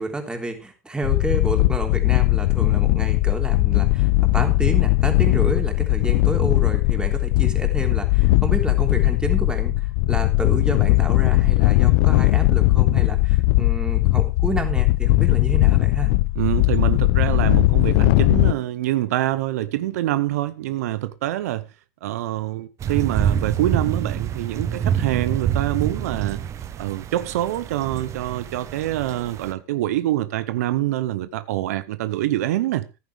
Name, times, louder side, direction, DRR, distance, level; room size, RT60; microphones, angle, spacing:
voice 1, 0.0-16.1, right 2 dB, 10° right, 3.3 m, -30 dB
sound 1, 1.0-18.5, left 20 dB, 70° left, 0.5 m, -19 dB
voice 2, 16.4-21.7 22.0-26.4 26.8-32.9, right 14 dB, 85° right, 0.7 m, -25 dB
sound 2, 22.8-29.5, right 9 dB, 40° right, 0.9 m, -26 dB
14.5 x 10.5 x 3.4 m
supercardioid pair, 100°, 8 cm